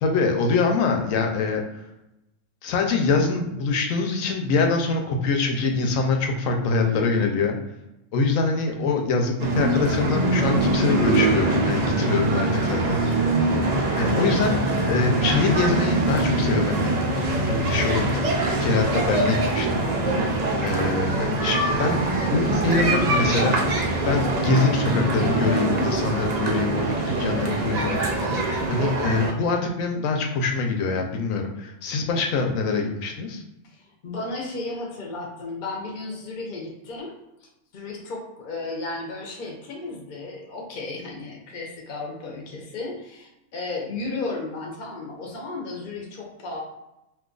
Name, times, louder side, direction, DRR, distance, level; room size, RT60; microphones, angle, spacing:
voice 1, 0.0-1.6 2.6-7.5 8.1-13.0 14.0-16.9 17.4-19.8 20.6-22.0 22.3-23.6 24.0-28.4 28.7-33.4, left 4 dB, 90° left, 3 dB, 1.0 m, -24 dB
voice 2, 6.8-7.6 8.9-9.2 12.8-13.1 14.3-14.4 21.7-21.9 33.7-37.1 37.4-46.6, left 3 dB, 50° left, -1 dB, 0.7 m, -34 dB
sound 1, 9.4-29.3, right 2 dB, 65° right, 0.4 m, -23 dB
2.6 x 2.4 x 3.7 m, 0.91 s
omnidirectional pair, 1.4 m